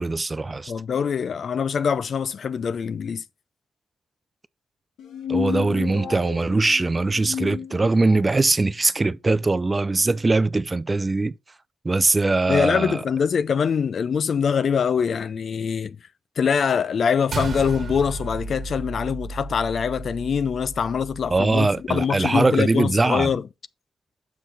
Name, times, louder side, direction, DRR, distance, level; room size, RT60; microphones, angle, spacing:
voice 1, 0.0-0.7 5.3-11.3 11.8-13.0 21.3-23.3, right 3 dB, 25° right, 0.4 m, -21 dB
voice 2, 0.7-3.2 12.5-16.0 16.4-23.5, left 6 dB, 55° left, 0.4 m, -24 dB
sound 1, 5.0-8.4, left 7 dB, 75° left, 1.4 m, -32 dB
sound 2, 17.3-21.9, right 3 dB, 50° right, 1.4 m, -34 dB
7.1 x 5.9 x 4.0 m
cardioid pair, 85°, 0 cm